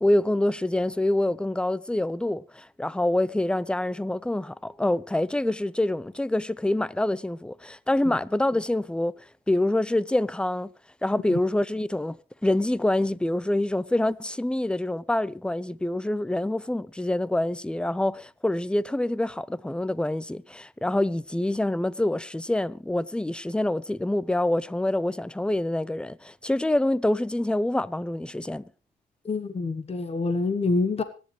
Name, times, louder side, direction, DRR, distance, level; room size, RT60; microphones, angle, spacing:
voice 1, 0.0-9.1 9.5-10.7 11.0-28.7, left 1 dB, 5° left, 0.6 m, -26 dB
voice 2, 29.2-31.0, left 3 dB, 30° left, 1.2 m, -26 dB
25.5 x 10.5 x 3.3 m
cardioid pair, 90°, 20 cm